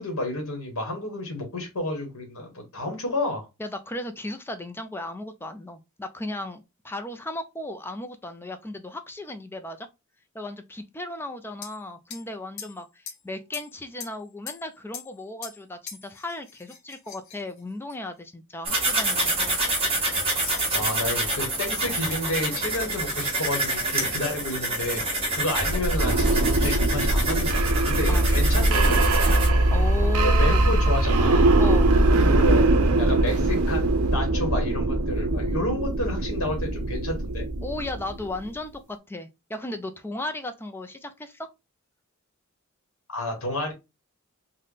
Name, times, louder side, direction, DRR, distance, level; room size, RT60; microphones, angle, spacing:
voice 1, 0.0-3.5 20.7-29.4 30.2-31.6 32.3-32.6 33.0-37.5 43.1-43.7, left 1 dB, 90° left, 1.1 m, -31 dB
voice 2, 3.6-9.9 10.3-19.6 28.1-28.3 28.5-28.8 29.7-30.8 31.6-32.0 37.6-41.5, left 1 dB, 10° left, 0.3 m, -35 dB
sound 1, 11.6-11.8 12.1-12.3 12.6-13.2 13.5-14.2 14.5-15.6 15.9-18.1 18.7-18.9 19.3-19.9 20.4-21.0 22.8-22.9 24.2-24.8 25.4-25.8, left 8 dB, 65° left, 0.7 m, -42 dB
sound 2, 18.7-29.5, right 2 dB, 25° right, 1.4 m, -27 dB
sound 3, 25.6-38.4, right 2 dB, 85° right, 0.6 m, -21 dB
4.0 x 2.1 x 3.2 m
head